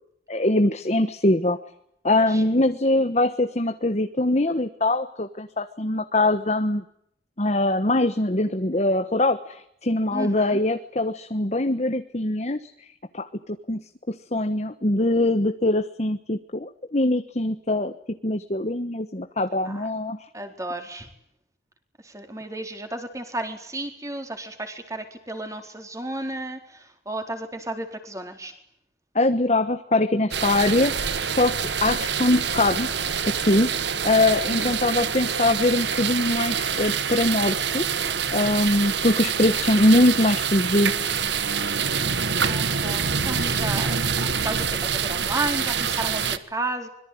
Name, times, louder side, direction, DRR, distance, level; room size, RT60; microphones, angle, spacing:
voice 1, 0.3-1.6 2.0-6.8 7.4-12.7 13.1-13.8 14.1-17.9 18.2-20.2 29.1-32.9 33.2-37.8 38.3-41.2, left 1 dB, 35° left, 8 dB, 1.3 m, -22 dB
voice 2, 10.1-10.6 19.6-19.9 20.3-21.1 22.0-28.5 34.5-34.9 39.2-39.6 42.4-46.9, right 2 dB, 20° right, 5 dB, 4.2 m, -33 dB
sound 1, 30.3-46.4, right 6 dB, 75° right, 1.6 m, -26 dB
25.0 x 22.5 x 9.6 m, 0.74 s
head